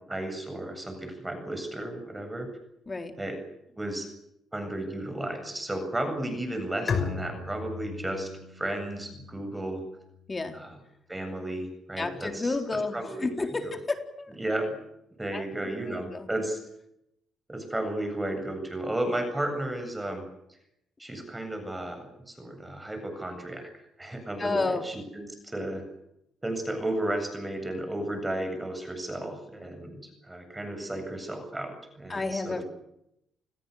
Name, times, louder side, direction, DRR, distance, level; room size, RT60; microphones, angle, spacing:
voice 1, 0.1-2.5 3.2-3.4 3.8-4.1 4.5-9.8 10.5-10.7 11.1-13.3 13.6-13.7 14.4-14.8 15.2-16.6 17.5-20.2 21.0-25.8 26.4-32.6, right 1 dB, 15° right, 6 dB, 7.8 m, -33 dB
Bowed string instrument, 6.9-10.4, left 5 dB, 50° left, 6.3 m, -35 dB
voice 2, 12.0-14.3 15.3-16.3 24.4-24.9 32.1-32.6, left 3 dB, 25° left, 6 dB, 4.0 m, -31 dB
29.5 x 21.0 x 6.7 m, 0.79 s
cardioid pair, 90°, 0 cm